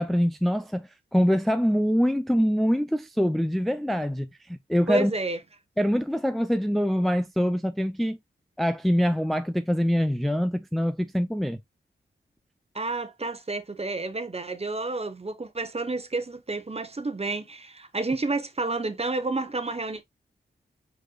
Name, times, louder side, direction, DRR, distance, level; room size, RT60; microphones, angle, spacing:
voice 1, 0.0-5.1 5.8-8.2 8.6-11.6, equal, ahead, 0.4 m, -24 dB
voice 2, 4.9-5.4 12.7-20.0, right 3 dB, 30° right, 1.0 m, -30 dB
4.8 x 4.2 x 2.3 m
cardioid pair, 40°, 21 cm